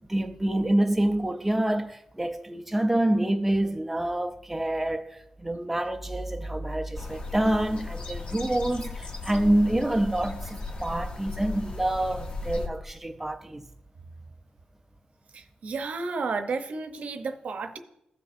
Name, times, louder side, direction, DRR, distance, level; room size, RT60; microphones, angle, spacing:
voice 1, 0.1-13.7, right 1 dB, 5° right, 0.4 m, -27 dB
sound 1, 6.9-12.7, left 2 dB, 40° left, 0.9 m, -36 dB
voice 2, 15.3-17.8, right 4 dB, 60° right, 0.7 m, -32 dB
16.0 x 5.5 x 2.5 m
wide cardioid pair, 160°, 3 cm